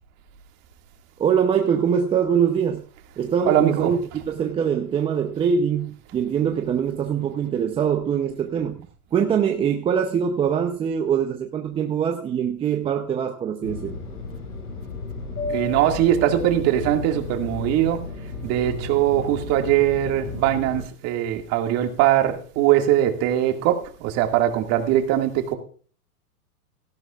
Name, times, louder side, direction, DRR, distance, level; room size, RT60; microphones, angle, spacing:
voice 1, 1.2-2.8 3.2-4.0 4.3-8.8 9.1-14.0, right 7 dB, 10° right, 0.6 m, -23 dB
voice 2, 3.5-3.9 15.5-18.0 18.4-25.5, right 12 dB, 35° right, 2.0 m, -21 dB
Fixed-wing aircraft airplane, 13.6-20.8, left 3 dB, 90° left, 7.4 m, -33 dB
17.5 x 12.5 x 2.4 m
hypercardioid pair, 135°, 45 cm